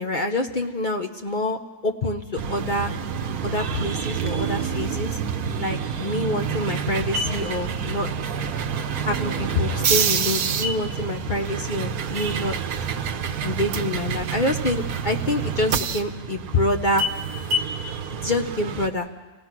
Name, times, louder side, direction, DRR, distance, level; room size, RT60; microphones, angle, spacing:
voice 1, 0.0-1.6 1.8-2.9 3.4-5.2 5.6-8.1 9.1-12.5 13.4-17.1 18.1-19.1, left 1 dB, 35° left, 4 dB, 0.9 m, -26 dB
sound 1, 2.4-18.9, right 5 dB, 65° right, 1.4 m, -27 dB
27.5 x 17.0 x 6.0 m, 1.2 s
omnidirectional pair, 1.7 m